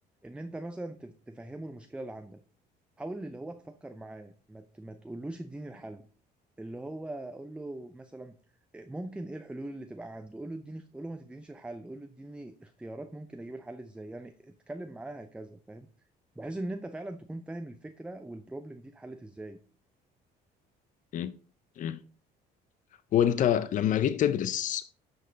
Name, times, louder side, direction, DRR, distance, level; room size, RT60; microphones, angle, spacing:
voice 1, 0.2-2.4 3.0-6.0 6.6-8.4 8.7-15.9 16.4-19.6, right 1 dB, 5° right, 0.6 m, -41 dB
voice 2, 23.1-24.9, left 10 dB, 50° left, 0.6 m, -26 dB
9.7 x 5.3 x 4.0 m
cardioid pair, 110°, 17 cm